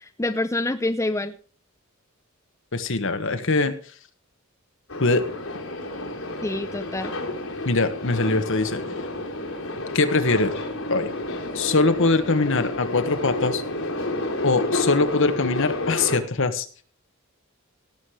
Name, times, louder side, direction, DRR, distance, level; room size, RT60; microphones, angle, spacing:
voice 1, 0.0-1.4 6.4-7.1, left 2 dB, 15° left, 9 dB, 0.6 m, -26 dB
voice 2, 2.7-3.8 5.0-5.2 7.6-8.8 9.9-10.5 10.9-11.1 11.5-13.6 14.4-16.7, left 3 dB, 65° left, 9 dB, 1.4 m, -22 dB
sound 1, 4.9-16.2, left 2 dB, 80° left, 3.2 m, -30 dB
17.5 x 7.5 x 4.9 m, 0.41 s
head